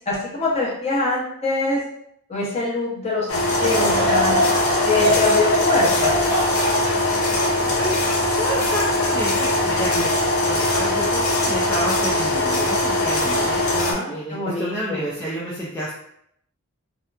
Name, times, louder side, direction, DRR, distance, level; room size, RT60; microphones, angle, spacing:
voice 1, 0.1-1.8 2.3-4.4 4.8-6.1 13.7-15.0, left 3 dB, 30° left, -6 dB, 0.8 m, -24 dB
sound 1, 3.3-13.9, left 1 dB, 80° left, 0.6 m, -21 dB
Laughter / Crowd, 3.5-9.0 9.5-9.6 10.4-10.7, right 1 dB, 45° right, 0.5 m, -25 dB
voice 2, 8.3-13.6 14.1-15.9, right 1 dB, 10° left, -6 dB, 0.3 m, -29 dB
2.8 x 2.1 x 2.3 m, 0.72 s
head